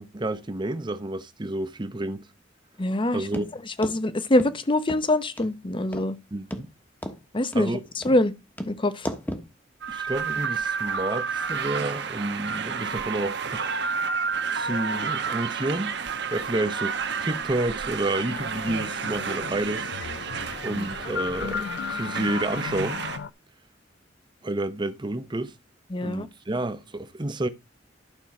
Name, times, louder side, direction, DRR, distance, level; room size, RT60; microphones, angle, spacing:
voice 1, 0.0-2.3 3.1-3.5 6.3-6.7 7.5-7.8 9.9-13.8 14.5-16.0 16.3-19.9 20.6-23.0 24.4-25.5 26.0-27.5, right 2 dB, 25° right, 0.8 m, -30 dB
voice 2, 2.8-3.3 3.8-6.2 7.3-7.7 8.0-8.3 8.7-9.1 20.7-21.1 25.9-26.3, left 1 dB, 30° left, 0.8 m, -24 dB
sound 1, 3.3-3.5 3.8-4.0 4.4-4.5 4.9-5.0 5.4-5.5 5.9-6.1 6.5-6.6 7.0-7.2 7.5-7.7 8.0-8.2 8.6-8.7 9.0-9.5, equal, 10° left, 1.2 m, -33 dB
sound 2, 9.8-23.2, right 5 dB, 65° right, 1.1 m, -31 dB
sound 3, 18.2-23.3, left 6 dB, 85° left, 0.5 m, -35 dB
11.5 x 6.2 x 4.3 m
head